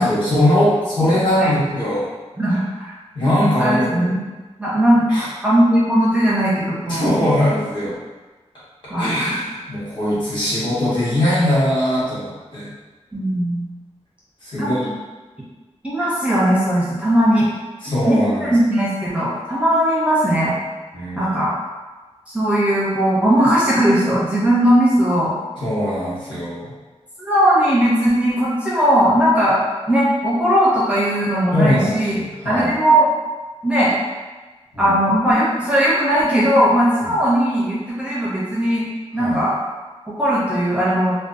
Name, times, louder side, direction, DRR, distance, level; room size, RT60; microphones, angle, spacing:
voice 1, 0.0-2.1 3.1-4.1 5.1-5.3 6.9-7.9 9.0-12.7 14.4-14.9 17.8-18.5 20.9-21.3 25.6-26.7 31.5-32.7 34.7-34.9 37.0-37.1 39.2-39.4, left 1 dB, 40° left, -10 dB, 1.1 m, -20 dB
voice 2, 3.6-4.2 4.6-5.0 5.4-7.1 8.9-9.4 13.1-13.6 14.6-14.7 15.8-17.5 18.1-20.5 21.2-21.5 22.3-25.3 27.2-29.6 29.9-32.1 32.5-33.1 33.6-34.0 34.8-38.9 39.1-39.5 40.1-41.2, equal, 10° right, -8 dB, 0.5 m, -18 dB
2.5 x 2.2 x 2.4 m, 1.3 s
wide cardioid pair, 115°, 12 cm